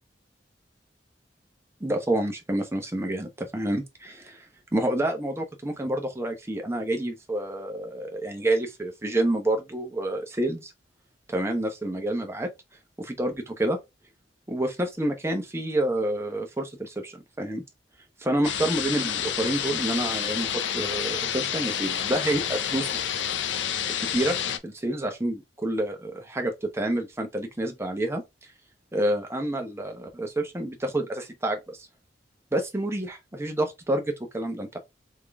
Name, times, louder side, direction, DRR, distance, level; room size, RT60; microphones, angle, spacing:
voice 1, 1.8-4.4 4.7-10.7 11.3-12.5 13.0-13.8 14.5-17.6 18.2-23.0 24.1-24.4 24.6-28.2 28.9-31.9 32.5-34.8, right 1 dB, 15° right, 0.9 m, -28 dB
sound 1, 18.4-24.6, left 9 dB, 90° left, 0.6 m, -29 dB
3.7 x 3.6 x 3.4 m
head